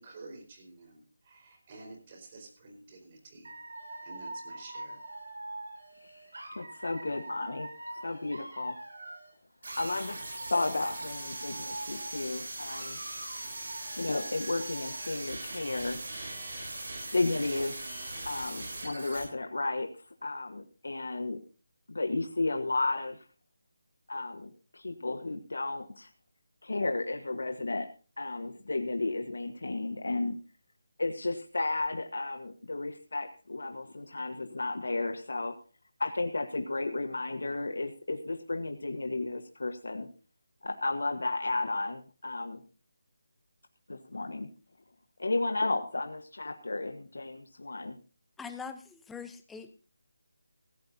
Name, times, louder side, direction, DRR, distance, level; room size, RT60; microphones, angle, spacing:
voice 1, 0.0-5.0, right 2 dB, 30° right, 3 dB, 4.5 m, -50 dB
Dog / Alarm, 3.4-9.3 9.6-12.3 12.6-15.4, right 2 dB, 80° right, 7.9 m, -44 dB
voice 2, 6.6-7.7 8.0-8.8 9.8-10.2 10.5-13.0 14.0-16.0 17.1-19.9 20.2-21.4 21.9-23.2 24.1-26.1 26.6-27.9 28.2-30.4 31.0-35.5 36.0-40.1 40.6-42.6 43.9-44.5 45.2-48.0, left 2 dB, 80° left, 7 dB, 1.3 m, -33 dB
sound 1, 9.6-19.2, right 2 dB, 60° right, 8.0 m, -40 dB
voice 3, 48.4-49.7, left 6 dB, 5° left, 9 dB, 0.8 m, -42 dB
16.5 x 15.5 x 2.7 m, 0.35 s
figure-of-eight pair, 165°, 0 cm